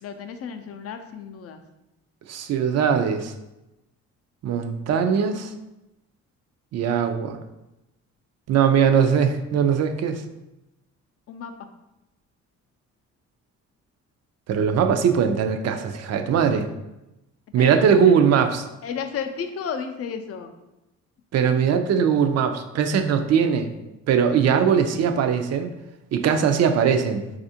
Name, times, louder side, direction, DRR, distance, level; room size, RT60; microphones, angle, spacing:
voice 1, 0.0-1.6 11.3-11.5 17.5-17.7 18.8-20.5 21.9-22.1, left 6 dB, 50° left, 7 dB, 0.5 m, -33 dB
voice 2, 2.3-3.3 4.4-5.5 6.7-7.4 8.5-10.2 14.5-16.7 17.5-18.7 21.3-23.7 24.1-25.7 26.1-27.2, right 7 dB, 60° right, 7 dB, 0.4 m, -20 dB
4.1 x 2.4 x 2.7 m, 0.95 s
cardioid pair, 90°, 30 cm